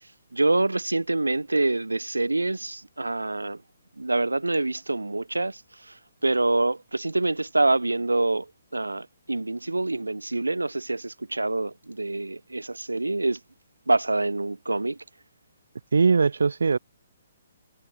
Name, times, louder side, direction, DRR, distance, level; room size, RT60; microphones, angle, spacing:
voice 1, 0.3-3.6 4.0-8.5 8.7-13.4 13.9-15.0, right 2 dB, 90° right, 3.2 m, -26 dB
voice 2, 15.9-16.8, right 4 dB, 75° right, 3.0 m, -20 dB
figure-of-eight pair, 135°, 0 cm